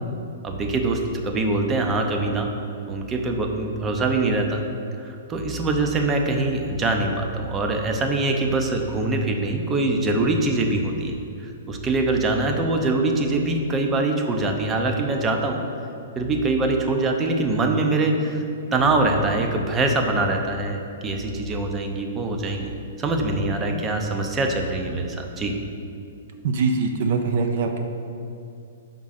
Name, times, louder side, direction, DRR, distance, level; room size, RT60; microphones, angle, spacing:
voice 1, 0.4-2.5 2.9-4.6 5.0-15.6 16.2-18.4 18.7-25.5, right 2 dB, 15° right, 3 dB, 0.6 m, -23 dB
voice 2, 26.4-27.8, right 4 dB, 55° right, 5 dB, 0.6 m, -23 dB
5.0 x 3.7 x 5.7 m, 2.6 s
hypercardioid pair, 145°, 0 cm